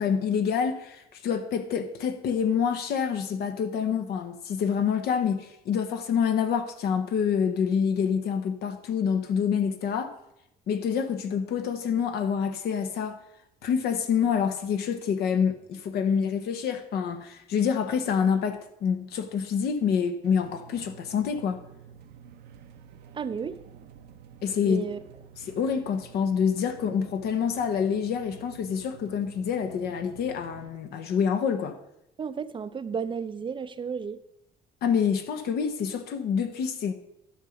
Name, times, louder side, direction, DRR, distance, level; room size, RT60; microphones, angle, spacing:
voice 1, 0.0-10.1 10.7-13.2 13.6-21.6 24.4-24.8 25.4-31.8 34.8-36.9, left 7 dB, 70° left, 1.1 m, -27 dB
sound 1, 20.2-30.7, right 8 dB, 70° right, 0.8 m, -50 dB
voice 2, 23.1-23.6 24.6-25.0 32.2-34.2, right 6 dB, 30° right, 0.5 m, -33 dB
11.5 x 5.9 x 5.2 m
cardioid pair, 110°, 17 cm